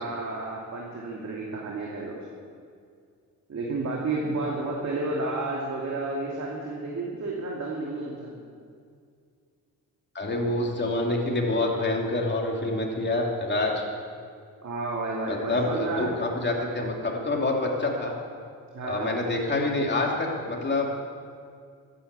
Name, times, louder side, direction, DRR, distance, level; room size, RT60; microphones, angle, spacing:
voice 1, 0.0-2.2 3.5-8.4 14.6-16.1 18.7-19.2, right 3 dB, 50° right, -3 dB, 2.5 m, -31 dB
voice 2, 10.1-13.8 15.3-18.1 18.8-20.9, left 2 dB, 30° left, 0 dB, 3.0 m, -27 dB
12.5 x 10.0 x 8.3 m, 2.2 s
cardioid pair, 75°, 34 cm